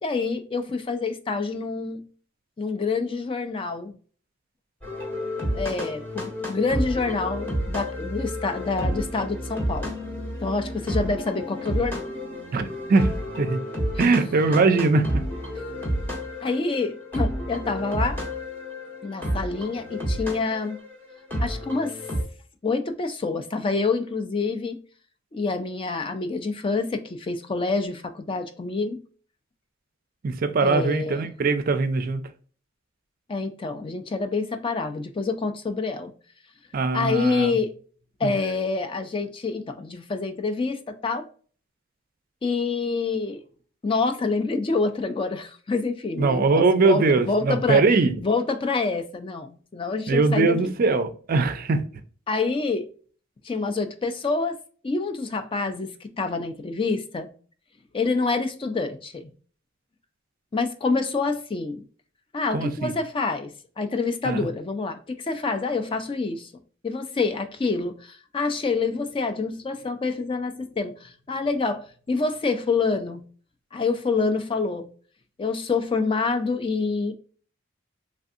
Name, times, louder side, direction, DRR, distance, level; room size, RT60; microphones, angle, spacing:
voice 1, 0.0-2.0 2.6-3.9 5.5-9.9 10.4-12.0 16.4-18.2 19.0-20.8 21.4-22.0 22.6-24.8 25.3-29.0 30.6-31.3 33.3-36.1 36.9-37.7 38.2-41.3 42.4-43.4 43.8-47.8 48.2-50.6 52.3-52.9 53.4-54.6 54.8-57.3 57.9-59.3 60.5-61.8 62.3-66.5 66.8-73.2 73.7-74.9 75.4-77.1, left 4 dB, 25° left, 0.4 m, -27 dB
sound 1, 4.8-22.2, equal, 10° left, 1.4 m, -30 dB
voice 2, 14.0-15.2 30.2-32.2 36.7-37.6 38.2-38.3 46.2-48.1 50.1-51.8 62.5-62.9 64.2-64.5, right 3 dB, 45° right, 0.4 m, -21 dB
3.3 x 2.6 x 2.4 m
head